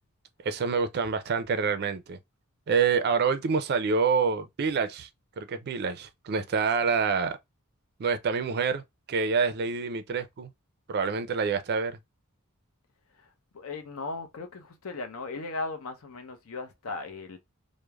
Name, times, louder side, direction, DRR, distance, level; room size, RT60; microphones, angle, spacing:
voice 1, 0.4-2.2 2.7-5.1 5.4-7.4 8.0-8.8 9.1-10.5 10.9-12.0, right 5 dB, 50° right, 0.4 m, -27 dB
voice 2, 13.1-17.4, left 3 dB, 70° left, 0.6 m, -37 dB
3.1 x 2.0 x 2.2 m
head